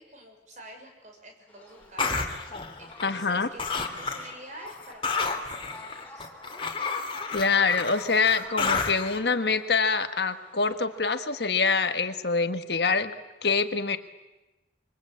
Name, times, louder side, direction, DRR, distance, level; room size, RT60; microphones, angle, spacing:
voice 1, 0.0-6.3, right 1 dB, 45° right, 3 dB, 6.1 m, -48 dB
sound 1, 1.5-11.4, left 2 dB, 10° left, 5.4 m, -51 dB
sound 2, 2.0-3.3 3.6-4.3 4.7-9.2, left 4 dB, 30° left, 2.7 m, -31 dB
voice 2, 3.0-3.5 7.3-13.1 13.4-14.0, left 4 dB, 65° left, 9 dB, 1.5 m, -25 dB
26.5 x 24.0 x 8.7 m, 1.0 s
head